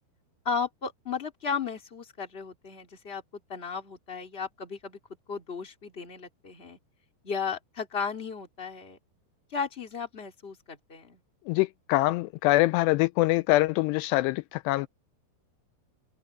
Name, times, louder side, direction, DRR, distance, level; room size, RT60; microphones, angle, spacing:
voice 1, 0.4-3.2 3.5-5.0 5.3-6.8 7.2-9.0 9.5-11.2, left 5 dB, 15° left, 2.5 m, -35 dB
voice 2, 11.5-14.9, left 18 dB, 85° left, 2.6 m, -24 dB
omnidirectional pair, 4.9 m